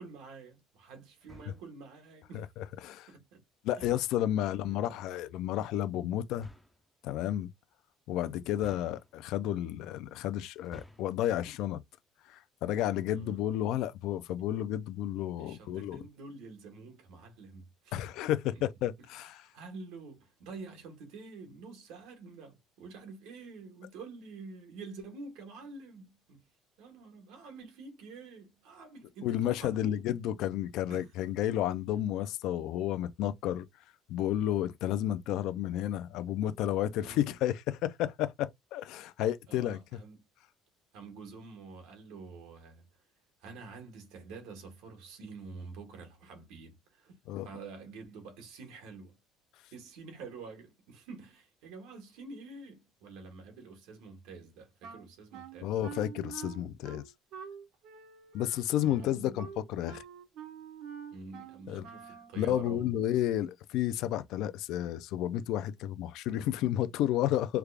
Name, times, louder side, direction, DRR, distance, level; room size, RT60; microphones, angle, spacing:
voice 1, 0.0-2.5 3.1-3.4 3.8-3.9 4.4-5.0 13.1-13.4 15.4-18.0 19.4-26.5 26.8-30.0 30.9-31.1 31.8-31.9 37.0-37.4 39.5-40.2 40.9-42.9 43.4-47.2 47.4-49.2 49.7-55.8 58.8-59.5 61.1-63.3, right 4 dB, 80° right, 1.5 m, -48 dB
sound 1, 1.2-1.8 3.7-4.4 6.3-6.8 8.6-9.4 10.5-11.2, equal, ahead, 0.5 m, -53 dB
voice 2, 2.3-3.1 3.6-6.5 7.0-7.5 8.1-11.8 12.3-16.0 17.9-19.4 29.2-33.7 34.1-39.8 47.3-47.5 55.6-57.0 58.3-60.0 61.7-61.8 62.4-67.6, left 12 dB, 60° left, 0.4 m, -31 dB
Wind instrument woodwind instrument, 54.8-62.4, right 7 dB, 60° right, 0.8 m, -47 dB
3.4 x 2.4 x 3.3 m
cardioid pair, 170°, 0 cm